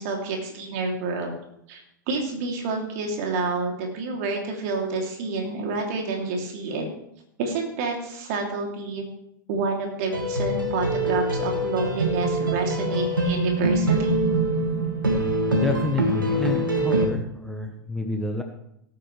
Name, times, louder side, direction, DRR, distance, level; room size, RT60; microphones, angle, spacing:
voice 1, 0.0-1.3 1.7-1.8 2.1-6.9 7.4-9.0 9.5-14.2, right 3 dB, 50° right, 1 dB, 3.1 m, -28 dB
sound 1, 10.1-17.1, right 1 dB, 80° right, 2.1 m, -24 dB
voice 2, 15.5-18.4, left 1 dB, 5° left, 2 dB, 1.2 m, -29 dB
17.5 x 9.0 x 3.4 m, 0.77 s
figure-of-eight pair, 95°, 11 cm